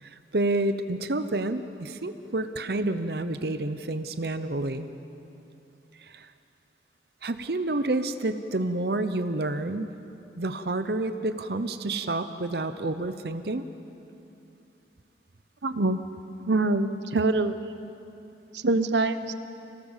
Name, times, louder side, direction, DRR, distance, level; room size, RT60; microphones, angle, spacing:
voice 1, 0.0-4.9 6.0-6.3 7.2-9.9 10.4-13.6, right 2 dB, 60° right, 10 dB, 0.8 m, -29 dB
voice 2, 15.6-16.0 16.5-17.6 18.5-19.3, right 2 dB, 85° right, 11 dB, 1.0 m, -24 dB
26.0 x 17.5 x 7.3 m, 2.9 s
head